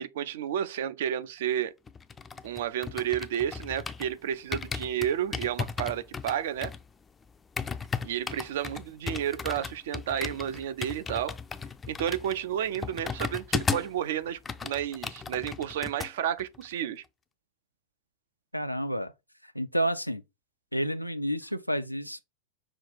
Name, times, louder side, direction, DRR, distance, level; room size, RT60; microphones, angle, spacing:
voice 1, 0.0-1.7 2.4-6.7 8.0-11.3 11.9-17.0, right 10 dB, 55° right, 0.4 m, -31 dB
sound 1, 1.9-4.2 4.5-14.0 14.3-16.1 16.4-16.7, left 5 dB, 15° left, 0.4 m, -35 dB
voice 2, 18.5-19.1 19.4-20.2 20.7-22.2, equal, 90° left, 0.4 m, -30 dB
5.7 x 2.3 x 4.1 m
figure-of-eight pair, 90°, 0 cm